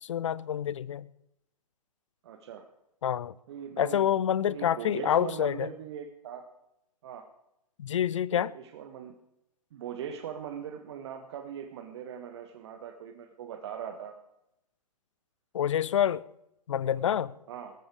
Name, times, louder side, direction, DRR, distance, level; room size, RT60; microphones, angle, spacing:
voice 1, 0.0-1.1 3.0-3.3 3.8-5.7 7.8-8.5 15.5-16.2 16.7-17.3, left 10 dB, 50° left, 0.6 m, -27 dB
voice 2, 2.2-2.7 3.5-4.0 4.5-6.4 7.0-7.2 8.3-9.1 9.7-14.2 17.5-17.7, right 8 dB, 40° right, 1.4 m, -40 dB
18.0 x 14.0 x 4.9 m
figure-of-eight pair, 120°, 21 cm